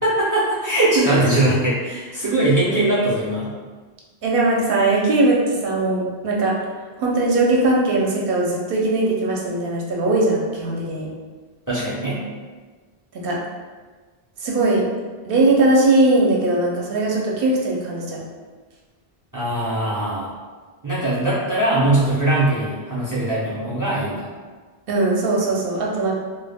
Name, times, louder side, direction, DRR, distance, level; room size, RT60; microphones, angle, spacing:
voice 1, 0.0-3.5 11.7-12.2 19.3-20.3 20.8-24.3, right 1 dB, 30° right, -8 dB, 0.4 m, -21 dB
voice 2, 4.2-6.6 7.0-11.1 13.2-13.4 14.4-14.8 15.2-18.2 24.9-26.1, right 2 dB, 65° right, -3 dB, 0.7 m, -19 dB
2.1 x 2.1 x 3.3 m, 1.4 s
omnidirectional pair, 1.0 m